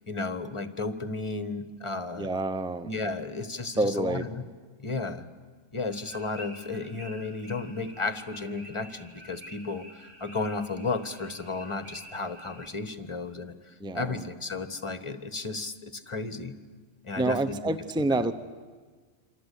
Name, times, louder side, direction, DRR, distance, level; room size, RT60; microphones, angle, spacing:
voice 1, 0.0-2.3 2.8-4.4 4.8-5.2 5.7-16.6 17.0-17.5 18.1-18.2, left 3 dB, 25° left, 10 dB, 1.3 m, -34 dB
voice 2, 2.2-2.9 3.8-4.2 13.8-14.1 17.2-18.3, right 2 dB, 5° right, 12 dB, 0.7 m, -27 dB
sound 1, 5.9-12.7, right 1 dB, 55° right, 2.7 m, -49 dB
27.0 x 26.0 x 8.5 m, 1.5 s
omnidirectional pair, 1.3 m